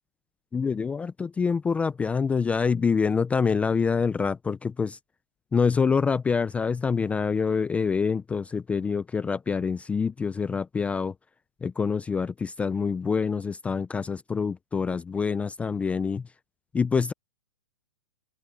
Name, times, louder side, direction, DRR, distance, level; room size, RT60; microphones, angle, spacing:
voice 1, 0.5-5.0 5.5-11.1 11.6-16.2 16.7-17.1, left 5 dB, 10° left, 0.5 m, -26 dB
hypercardioid pair, 145°, 15 cm